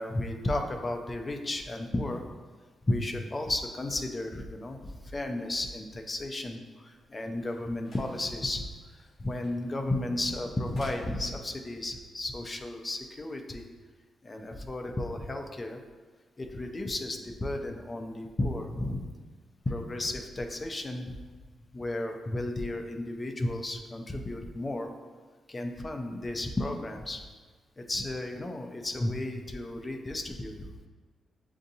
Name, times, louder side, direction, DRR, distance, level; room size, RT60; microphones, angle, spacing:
voice 1, 0.0-2.2 2.8-8.6 8.9-13.6 14.2-15.8 16.4-19.1 19.7-21.2 21.7-24.9 25.5-27.2 27.8-30.9, left 1 dB, 20° left, 4 dB, 0.4 m, -33 dB
sound 1, 6.9-11.8, equal, 35° left, 0.9 m, -53 dB
7.3 x 2.6 x 2.7 m, 1.4 s
wide cardioid pair, 175°, 0 cm